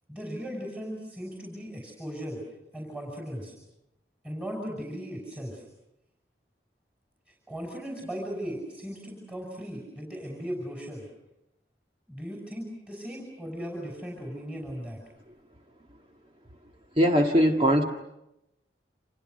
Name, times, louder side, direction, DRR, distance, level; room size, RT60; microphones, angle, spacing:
voice 1, 0.1-2.4 2.7-3.5 4.2-5.6 7.3-11.1 12.1-15.0, equal, 5° right, 0 dB, 5.9 m, -37 dB
voice 2, 17.0-17.8, equal, 30° right, 2 dB, 1.8 m, -20 dB
29.5 x 27.0 x 6.6 m, 0.87 s
head